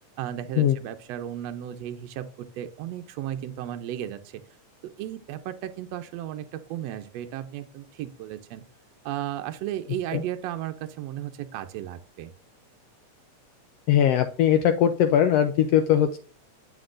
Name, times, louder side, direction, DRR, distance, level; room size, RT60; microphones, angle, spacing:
voice 1, 0.2-4.4 4.8-8.6 9.0-12.3, right 11 dB, 75° right, 7 dB, 1.6 m, -35 dB
voice 2, 13.9-16.2, left 10 dB, 80° left, 8 dB, 1.4 m, -20 dB
9.4 x 6.1 x 2.5 m, 0.40 s
omnidirectional pair, 3.4 m